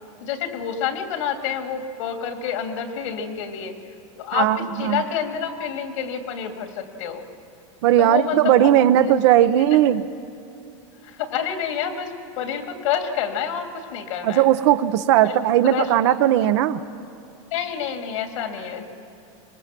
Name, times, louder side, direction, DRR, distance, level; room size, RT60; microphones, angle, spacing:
voice 1, 0.2-3.7 4.2-7.2 8.0-8.7 9.0-9.5 11.0-14.4 15.2-15.3 15.6-15.9 17.5-18.8, left 8 dB, 80° left, 4 dB, 2.9 m, -28 dB
voice 2, 4.3-5.0 7.8-10.0 14.2-16.8, right 12 dB, 65° right, 11 dB, 0.9 m, -18 dB
25.5 x 21.0 x 6.1 m, 2.8 s
supercardioid pair, 135°, 16 cm